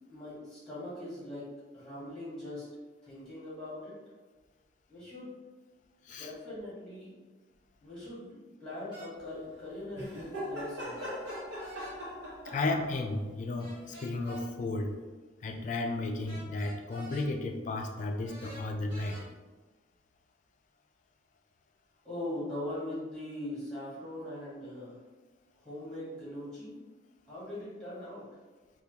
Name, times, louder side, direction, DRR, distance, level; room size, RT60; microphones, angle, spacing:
voice 1, 0.1-1.5 1.7-2.7 3.0-3.9 4.9-5.3 6.2-7.1 7.8-11.1 22.0-25.0 25.6-26.7 27.3-28.2, left 1 dB, 5° left, -10 dB, 1.4 m, -41 dB
sound 1, 8.9-9.1 10.9-12.0 13.6-14.4 16.3-17.3 18.2-19.2, right 1 dB, 25° right, 1.4 m, -48 dB
sound 2, 10.0-13.0 14.3-14.4, equal, 85° right, 1.0 m, -40 dB
voice 2, 12.4-14.9 15.4-19.2, left 2 dB, 40° left, 3 dB, 0.3 m, -33 dB
3.5 x 2.3 x 2.8 m, 1.3 s
head